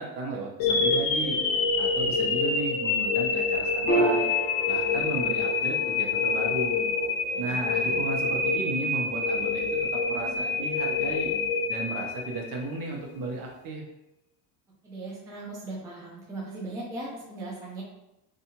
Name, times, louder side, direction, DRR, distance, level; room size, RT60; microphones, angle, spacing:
voice 1, 0.0-1.4 1.8-4.3 4.7-6.8 7.4-11.3 11.7-13.8, right 3 dB, 50° right, -1 dB, 0.8 m, -34 dB
sound 1, 0.6-12.7, left 4 dB, 55° left, 0.7 m, -27 dB
Piano, 3.9-10.8, right 1 dB, 25° left, 1.0 m, -34 dB
voice 2, 7.3-8.0 14.8-17.8, right 2 dB, 10° right, -5 dB, 0.4 m, -39 dB
2.7 x 2.4 x 2.8 m, 0.91 s
cardioid pair, 135°, 45 cm